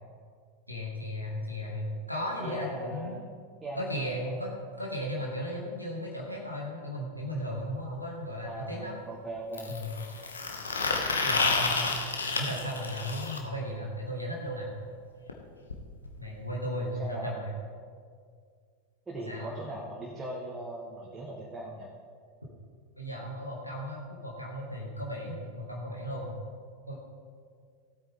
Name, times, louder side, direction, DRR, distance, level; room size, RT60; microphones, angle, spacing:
voice 1, 0.7-3.3 3.8-4.5 4.8-9.0 9.7-9.9 11.2-12.0 12.3-14.7 16.2-17.5 19.3-19.5 23.0-26.3 26.9-27.0, equal, 90° left, -3 dB, 2.3 m, -35 dB
voice 2, 2.4-3.2 3.6-4.4 8.4-9.8 16.8-17.3 19.1-21.9, right 1 dB, 15° right, -4 dB, 1.6 m, -39 dB
sound 1, 7.5-7.6 9.5-13.4 15.3-15.4 15.7-15.8 16.1-16.2 17.1-17.2, left 3 dB, 75° left, 1.2 m, -30 dB
16.0 x 8.8 x 3.8 m, 2.1 s
figure-of-eight pair, 90°, 0 cm